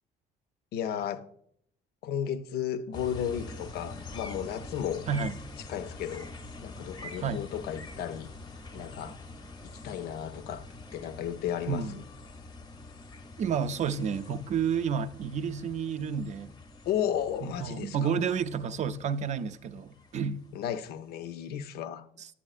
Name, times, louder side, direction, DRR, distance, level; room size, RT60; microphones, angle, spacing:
voice 1, 0.7-1.3 2.0-5.1 5.7-6.3 6.6-8.3 8.7-9.2 9.6-10.7 10.9-12.0 16.9-18.1 20.5-22.1, left 9 dB, 70° left, 0.5 m, -34 dB
sound 1, 2.9-20.9, left 2 dB, 25° left, 0.6 m, -46 dB
voice 2, 5.1-5.4 7.2-7.4 11.7-12.0 13.4-16.5 17.6-20.4 22.2-22.3, right 6 dB, 45° right, 0.4 m, -30 dB
9.9 x 8.2 x 2.4 m
cardioid pair, 110°, 17 cm